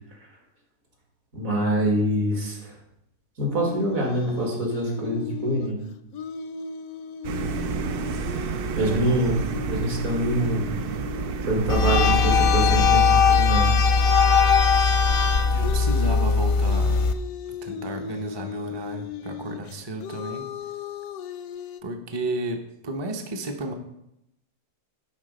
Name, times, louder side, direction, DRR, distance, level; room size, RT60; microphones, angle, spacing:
voice 1, 1.3-2.7 3.4-5.8 8.8-10.8 11.4-13.7, right 1 dB, 65° right, -1 dB, 2.5 m, -25 dB
sound 1, 3.5-13.7 15.2-21.8, left 9 dB, 80° left, 1.0 m, -37 dB
sound 2, 7.2-12.9, right 7 dB, 85° right, 0.5 m, -30 dB
voice 2, 8.7-9.5 15.5-17.1 17.6-20.5 21.8-23.7, right 1 dB, 25° right, 4 dB, 0.6 m, -32 dB
sound 3, 11.7-17.1, left 5 dB, 55° left, 0.6 m, -19 dB
11.0 x 4.1 x 5.2 m, 0.82 s
omnidirectional pair, 1.5 m